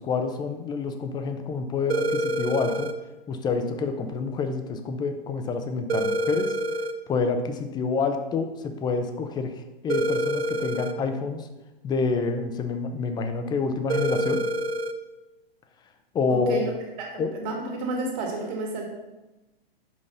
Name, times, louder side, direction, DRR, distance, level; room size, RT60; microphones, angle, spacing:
voice 1, 0.0-2.9 3.3-6.6 7.1-11.5 11.8-14.4 16.1-16.6 17.2-17.3, left 4 dB, 15° left, 7 dB, 0.5 m, -28 dB
sound 1, 1.9-2.9 5.9-6.9 9.9-10.9 13.9-14.9, right 1 dB, 85° right, 0.7 m, -27 dB
voice 2, 16.3-16.7 17.0-18.9, right 2 dB, 45° right, 0 dB, 2.1 m, -31 dB
5.5 x 5.2 x 5.5 m, 1.1 s
hypercardioid pair, 125°, 30 cm